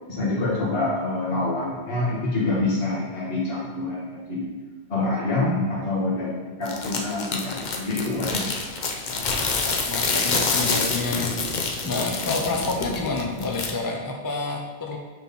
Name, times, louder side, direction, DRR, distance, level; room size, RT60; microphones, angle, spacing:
voice 1, 0.1-4.5 4.9-8.6, left 2 dB, 70° left, -7 dB, 1.6 m, -26 dB
sound 1, 6.7-13.7, left 4 dB, 50° left, 0.7 m, -27 dB
voice 2, 9.6-11.3 11.8-15.0, left 3 dB, 35° left, 1 dB, 0.3 m, -28 dB
4.5 x 4.0 x 5.3 m, 1.3 s
omnidirectional pair, 1.0 m